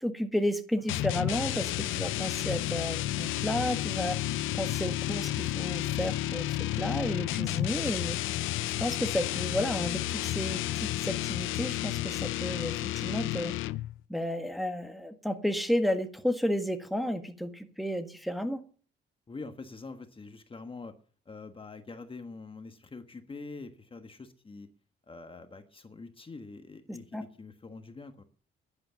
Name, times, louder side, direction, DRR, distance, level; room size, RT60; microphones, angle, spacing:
voice 1, 0.0-4.2 4.5-8.2 8.8-13.5 14.1-18.6 26.9-27.2, equal, ahead, 6 dB, 1.7 m, -32 dB
sound 1, 0.9-14.0, left 15 dB, 90° left, 0.6 m, -31 dB
voice 2, 19.3-20.9 21.2-24.7 25.1-28.2, left 3 dB, 25° left, 7 dB, 1.4 m, -45 dB
11.0 x 11.0 x 7.1 m, 0.43 s
cardioid pair, 90°, 20 cm